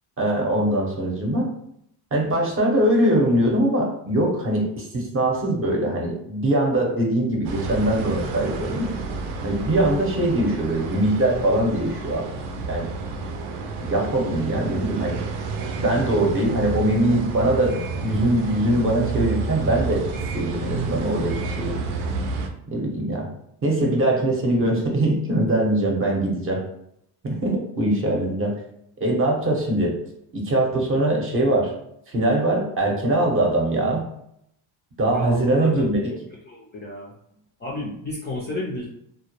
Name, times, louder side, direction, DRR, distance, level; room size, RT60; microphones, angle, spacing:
voice 1, 0.2-1.5 2.1-8.9 9.4-12.3 12.7-12.9 13.8-15.2 15.8-20.1 20.3-21.8 22.7-23.3 23.6-26.6 27.2-28.5 29.0-30.0 30.3-31.7 32.1-34.1 35.0-36.1, right 1 dB, 30° right, 0 dB, 0.7 m, -22 dB
sound 1, 7.4-22.5, right 4 dB, 80° right, 0.6 m, -30 dB
voice 2, 35.1-35.9 36.5-37.1 37.6-38.9, left 2 dB, 25° left, -3 dB, 0.4 m, -31 dB
2.1 x 2.0 x 2.9 m, 0.74 s
supercardioid pair, 100°, 46 cm